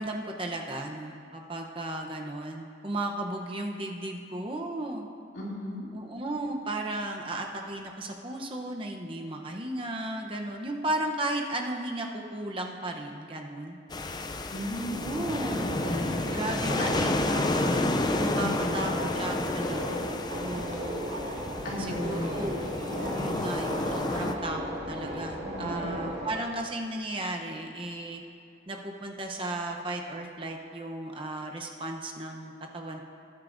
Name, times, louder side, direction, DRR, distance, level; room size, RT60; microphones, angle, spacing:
voice 1, 0.0-5.1 5.9-13.8 14.9-15.7 16.3-19.9 20.4-21.0 21.9-22.5 22.8-28.2 28.7-33.0, right 1 dB, 30° right, 2 dB, 0.8 m, -35 dB
voice 2, 5.3-5.9 14.5-15.2 15.6-16.2 16.8-17.0 18.4-18.9 21.6-22.5 25.4-25.9, left 1 dB, 80° left, -5 dB, 2.7 m, -36 dB
sound 1, 13.9-24.3, left 2 dB, 20° left, 0.4 m, -31 dB
Subway metro underground, 14.9-26.3, equal, 70° right, 2.0 m, -36 dB
18.5 x 9.5 x 2.6 m, 2.5 s
head